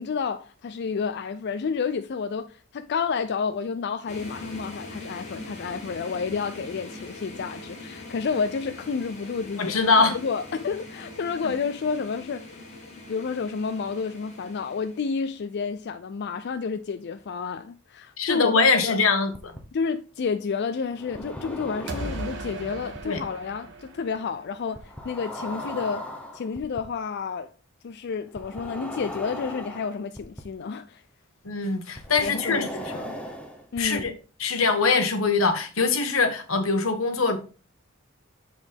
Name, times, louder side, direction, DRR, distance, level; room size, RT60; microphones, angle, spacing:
voice 1, 0.0-12.6 13.1-19.0 19.7-26.1 26.3-27.5 27.8-31.0 32.2-33.2 33.7-34.2, left 5 dB, 55° left, 0.4 m, -30 dB
sound 1, 4.1-15.4, left 2 dB, 35° left, 1.9 m, -42 dB
voice 2, 9.6-10.1 11.4-11.5 18.2-19.3 23.0-23.2 31.4-32.7 33.8-34.1 34.4-37.4, left 4 dB, 85° left, 1.4 m, -22 dB
sound 2, 19.3-19.6 20.9-22.5 22.9-23.2 24.7-26.8 28.4-30.4 32.0-34.0, equal, 5° left, 1.1 m, -37 dB
sound 3, 21.9-24.8, right 2 dB, 60° right, 1.4 m, -37 dB
7.1 x 6.2 x 3.5 m
head